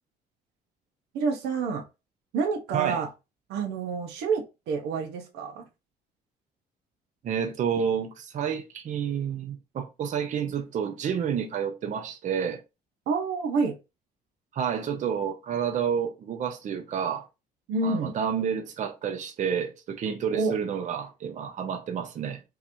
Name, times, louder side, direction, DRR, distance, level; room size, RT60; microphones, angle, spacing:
voice 1, 1.1-1.8 2.3-3.1 3.5-5.7 13.1-13.7 17.7-18.1 20.3-20.5, right 4 dB, 85° right, 0.8 m, -28 dB
voice 2, 7.2-12.6 14.5-17.3 17.8-22.4, right 7 dB, 45° right, 0.6 m, -29 dB
3.8 x 3.0 x 2.6 m
cardioid pair, 110°, 17 cm